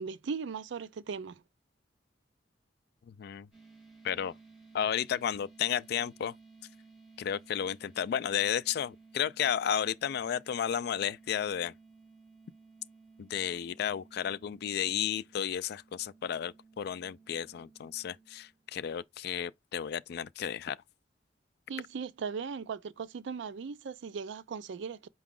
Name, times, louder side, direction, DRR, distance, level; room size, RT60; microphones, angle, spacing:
voice 1, 0.0-1.4 21.7-25.1, right 5 dB, 80° right, 0.4 m, -38 dB
voice 2, 3.1-3.5 4.0-4.3 4.7-6.3 7.2-11.7 13.2-20.8, left 9 dB, 60° left, 0.3 m, -33 dB
sound 1, 3.5-19.0, right 4 dB, 5° right, 2.9 m, -58 dB
4.8 x 2.3 x 3.6 m
head